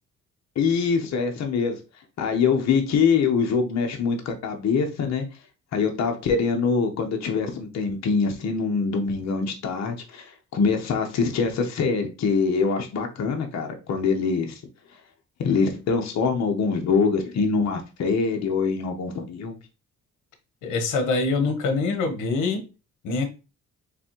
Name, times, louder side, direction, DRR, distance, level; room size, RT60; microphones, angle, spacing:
voice 1, 0.6-1.8 2.2-5.2 5.7-14.6 15.4-19.6, left 5 dB, 60° left, 0.9 m, -24 dB
voice 2, 20.6-22.6 23.0-23.3, left 3 dB, 90° left, 1.0 m, -24 dB
4.1 x 3.4 x 3.0 m
cardioid pair, 90°, 30 cm